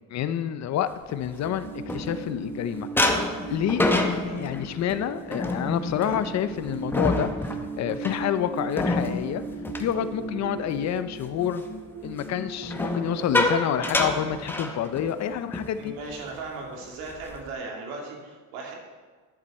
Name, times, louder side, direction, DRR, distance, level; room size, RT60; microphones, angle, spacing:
voice 1, 0.1-3.9 4.2-7.3 7.8-9.4 9.8-11.6 12.0-15.9, left 9 dB, 50° left, 12 dB, 0.7 m, -28 dB
footsteps shoes metal stairs up down resonate, 1.1-2.5 3.0-10.8 11.1-11.5 12.6-15.2 15.5-15.7 16.0-16.3 16.8-17.5, left 2 dB, 5° left, 0.9 m, -28 dB
sound 1, 1.4-13.3, right 3 dB, 60° right, 2.1 m, -38 dB
voice 2, 15.8-18.7, right 3 dB, 90° right, -1 dB, 2.6 m, -37 dB
11.5 x 7.2 x 4.3 m, 1.4 s
cardioid pair, 115°, 35 cm